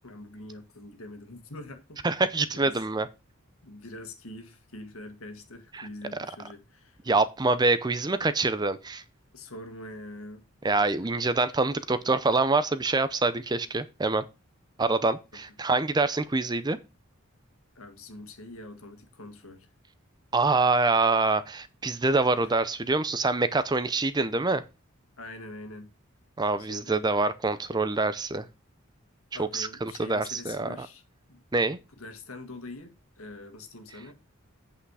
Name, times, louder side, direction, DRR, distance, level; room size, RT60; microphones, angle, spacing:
voice 1, 0.0-2.0 2.5-2.8 3.6-7.0 9.3-10.4 11.0-11.1 17.8-19.7 22.4-22.5 25.2-25.9 26.6-27.0 29.3-31.0 31.3-31.4 32.0-34.1, left 2 dB, 80° left, 1.8 m, -44 dB
voice 2, 2.0-3.1 5.7-5.9 7.1-9.0 10.6-14.2 14.8-16.8 20.3-24.6 26.4-28.4 29.4-30.9 31.5-31.8, right 3 dB, 20° right, 0.5 m, -25 dB
8.4 x 5.7 x 4.8 m
head